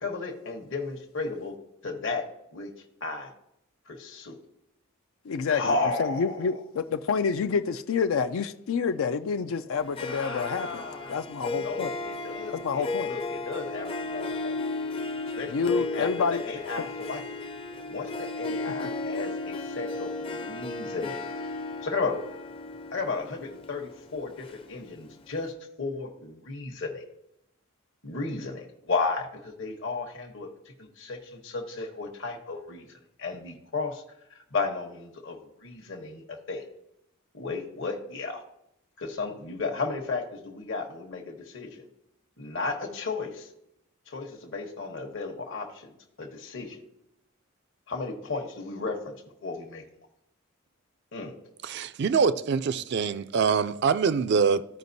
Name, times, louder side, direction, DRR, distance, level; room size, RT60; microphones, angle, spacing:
voice 1, 0.0-1.5 1.8-2.2 2.5-2.7 3.0-3.3 3.9-4.4 5.5-6.4 10.1-11.2 11.6-14.5 15.4-17.2 17.9-21.3 21.8-22.2 22.9-27.0 28.0-30.5 31.0-32.8 33.2-34.0 34.5-35.4 35.6-36.6 37.3-38.4 39.0-41.8 42.4-43.5 44.1-45.7 46.2-46.8 47.9-49.1 49.4-49.8 51.1-51.3, left 3 dB, 60° left, 1.0 m, -34 dB
voice 2, 5.3-10.8 11.1-11.9 12.5-13.1 15.5-16.4, left 5 dB, 80° left, 0.4 m, -28 dB
Harp, 9.8-25.1, left 3 dB, 25° left, 0.5 m, -35 dB
voice 3, 51.6-54.7, right 5 dB, 55° right, 0.4 m, -24 dB
14.0 x 5.1 x 2.7 m
head